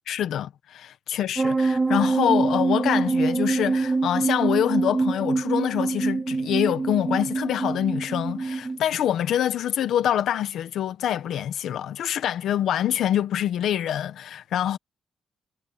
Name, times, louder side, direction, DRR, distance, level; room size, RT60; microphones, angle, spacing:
voice 1, 0.1-14.8, left 10 dB, 75° left, 1.3 m, -25 dB
sound 1, 1.4-8.8, right 3 dB, 15° right, 1.7 m, -25 dB
wide cardioid pair, 170°, 0 cm